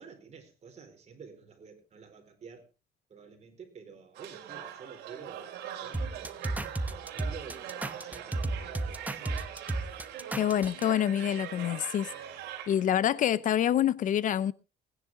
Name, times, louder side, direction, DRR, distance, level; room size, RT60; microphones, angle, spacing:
voice 1, 0.0-2.6 3.1-9.4, right 5 dB, 40° right, 4.7 m, -50 dB
sound 1, 4.1-12.9, right 10 dB, 85° right, 3.2 m, -42 dB
sound 2, 5.9-10.8, right 2 dB, 10° right, 1.0 m, -33 dB
voice 2, 10.4-12.1 12.7-14.5, left 10 dB, 50° left, 0.6 m, -26 dB
19.0 x 10.5 x 3.7 m
cardioid pair, 110°, 17 cm